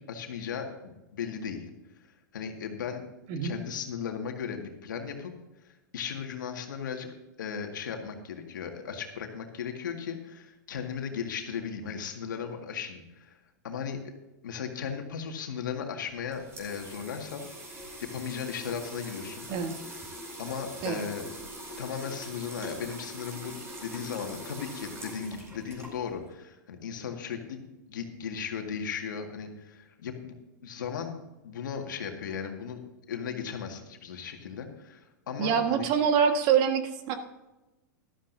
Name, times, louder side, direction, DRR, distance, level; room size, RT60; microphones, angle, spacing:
voice 1, 0.1-1.7 2.3-3.0 3.4-5.3 5.6-7.1 7.4-13.4 13.6-14.1 14.4-17.5 18.0-19.5 20.4-21.2 21.8-27.6 27.9-30.3 30.6-31.2 31.4-32.8 33.1-35.9, left 7 dB, 80° left, 3 dB, 2.0 m, -36 dB
voice 2, 3.3-3.6 19.5-19.8 20.8-21.0 35.4-37.2, right 7 dB, 45° right, 6 dB, 1.7 m, -25 dB
sound 1, 16.0-26.3, equal, 25° right, 4.2 m, -43 dB
13.5 x 12.5 x 2.8 m, 1.0 s
hypercardioid pair, 115°, 10 cm